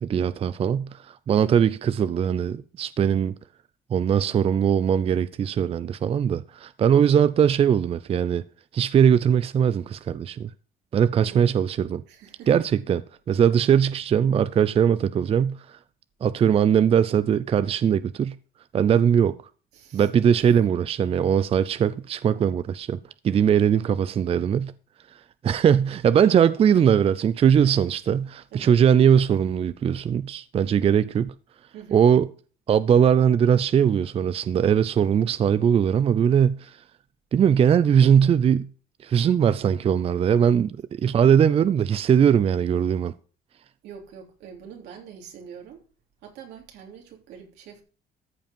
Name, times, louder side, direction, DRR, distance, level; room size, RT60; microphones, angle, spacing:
voice 1, 0.0-3.3 3.9-8.4 8.7-10.5 10.9-12.0 12.5-15.8 16.2-18.4 18.7-19.4 19.9-23.0 23.2-24.7 25.4-31.3 31.9-32.3 32.7-36.8 37.3-38.7 39.0-43.1, right 8 dB, 35° right, 0.4 m, -20 dB
voice 2, 11.2-11.6 12.1-12.5 19.7-20.1 28.5-28.8 31.7-32.1 43.8-45.8 46.2-47.8, right 7 dB, 85° right, 3.4 m, -44 dB
14.0 x 5.2 x 5.4 m
cardioid pair, 110°, 17 cm